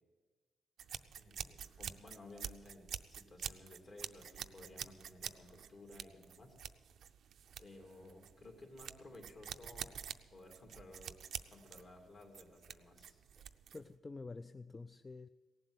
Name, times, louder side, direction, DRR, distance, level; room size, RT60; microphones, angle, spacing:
sound 1, 0.8-13.9, right 8 dB, 70° right, 0.5 m, -47 dB
voice 1, 1.1-6.6 7.6-11.2 11.5-13.3, left 2 dB, 50° left, 2.9 m, -56 dB
voice 2, 13.4-15.3, left 3 dB, 25° left, 0.3 m, -49 dB
17.5 x 7.7 x 8.1 m
cardioid pair, 100°, 0 cm